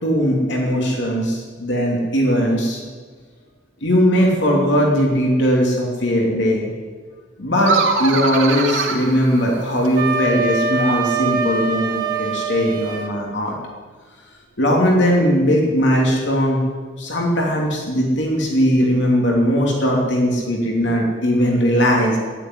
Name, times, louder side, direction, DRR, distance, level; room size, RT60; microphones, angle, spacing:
voice 1, 0.0-2.8 3.8-6.7 7.4-13.5 14.6-16.6 17.0-22.2, equal, 65° left, -1 dB, 2.9 m, -19 dB
sound 1, 7.6-10.1, right 4 dB, 85° right, 2.5 m, -23 dB
Wind instrument woodwind instrument, 9.9-13.1, right 4 dB, 45° right, 1.8 m, -23 dB
12.5 x 10.5 x 9.9 m, 1.5 s
head